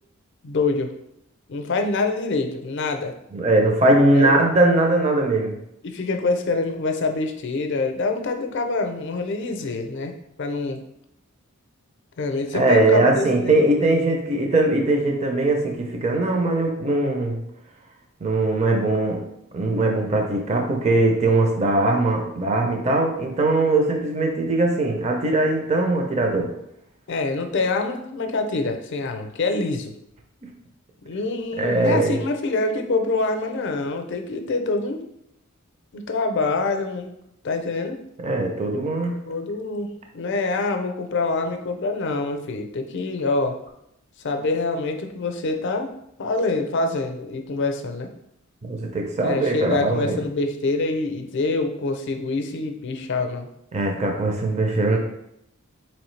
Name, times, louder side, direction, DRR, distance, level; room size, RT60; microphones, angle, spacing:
voice 1, 0.4-0.9 1.5-3.1 4.1-4.3 5.8-10.8 12.2-13.7 27.1-29.9 31.0-35.1 35.9-37.1 37.4-38.0 39.3-43.6 44.2-45.9 46.2-48.1 49.2-53.5, left 3 dB, 60° left, 5 dB, 0.5 m, -25 dB
voice 2, 3.3-5.5 12.5-17.4 18.2-19.2 19.5-26.5 31.6-32.2 38.2-39.2 48.6-50.2 53.7-55.0, right 2 dB, 35° right, 1 dB, 0.5 m, -20 dB
4.2 x 3.1 x 3.1 m, 0.78 s
head